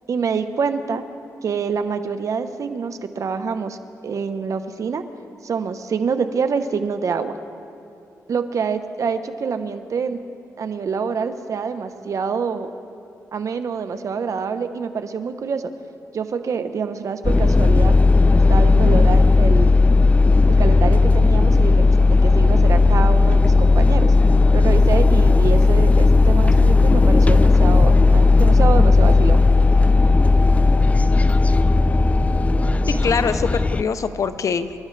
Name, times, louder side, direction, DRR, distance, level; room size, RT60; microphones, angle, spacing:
voice 1, 0.1-1.0 1.4-3.8 4.0-5.0 5.4-7.4 8.3-10.2 10.6-12.7 13.3-15.7 16.1-17.9 18.5-19.8 20.5-24.1 24.5-29.5, right 5 dB, 60° right, 9 dB, 0.9 m, -26 dB
sound 1, 17.2-33.8, left 3 dB, 20° left, 0.4 m, -15 dB
voice 2, 32.9-34.8, left 6 dB, 55° left, 12 dB, 0.7 m, -23 dB
29.0 x 12.5 x 3.3 m, 2.7 s
cardioid pair, 85°, 6 cm